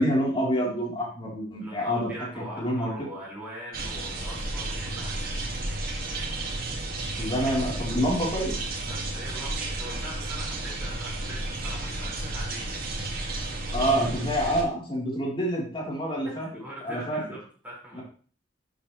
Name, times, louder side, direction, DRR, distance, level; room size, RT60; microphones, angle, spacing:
voice 1, 0.0-2.9 7.2-8.6 13.7-16.5 16.8-17.2 17.9-18.0, equal, 30° left, -4 dB, 3.8 m, -27 dB
voice 2, 1.6-5.2 8.9-12.8 13.1-13.8 16.2-18.0, equal, 10° right, -5 dB, 5.3 m, -42 dB
sound 1, 3.7-14.6, right 2 dB, 55° right, 2.1 m, -32 dB
11.5 x 7.2 x 3.3 m, 0.42 s
head